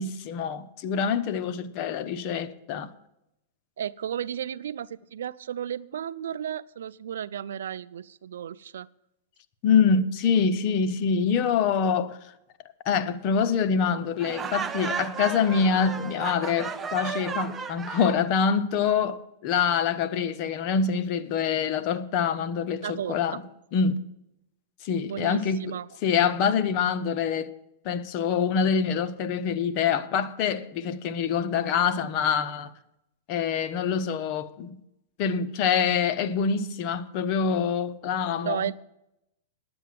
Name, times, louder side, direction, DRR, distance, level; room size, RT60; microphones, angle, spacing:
voice 1, 0.0-2.9 9.6-12.2 12.8-23.4 23.7-24.0 24.8-25.8 26.0-27.5 27.8-32.7 33.3-34.8 35.2-38.7, left 6 dB, 45° left, 0.8 m, -25 dB
voice 2, 3.8-8.9 22.8-23.2 25.1-25.9 38.4-38.7, right 9 dB, 85° right, 0.4 m, -33 dB
Laughter, 14.2-18.3, right 6 dB, 15° right, 0.6 m, -34 dB
10.5 x 7.9 x 7.5 m
hypercardioid pair, 140°, 0 cm